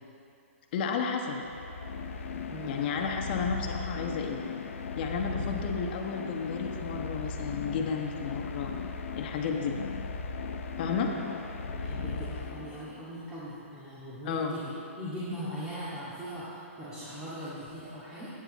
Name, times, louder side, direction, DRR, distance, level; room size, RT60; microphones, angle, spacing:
voice 1, 0.7-1.4 2.7-4.4 5.0-8.7 9.2-9.8 10.8-11.2 14.2-14.5, left 5 dB, 45° left, 2 dB, 1.2 m, -32 dB
sound 1, 1.4-13.1, left 4 dB, 70° left, 0.8 m, -37 dB
voice 2, 2.5-2.9 11.0-11.2 11.7-18.3, equal, 10° right, -11 dB, 2.1 m, -40 dB
11.5 x 9.3 x 4.2 m, 2.7 s
hypercardioid pair, 140°, 7 cm